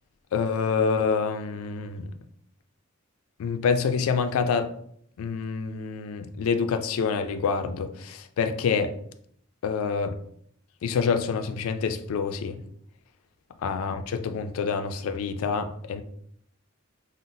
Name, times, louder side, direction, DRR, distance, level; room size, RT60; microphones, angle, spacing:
voice 1, 0.3-2.1 3.4-4.7 5.2-9.0 9.6-10.2 10.8-12.6 13.6-16.0, left 5 dB, 85° left, 0.3 m, -27 dB
3.8 x 2.0 x 2.5 m
head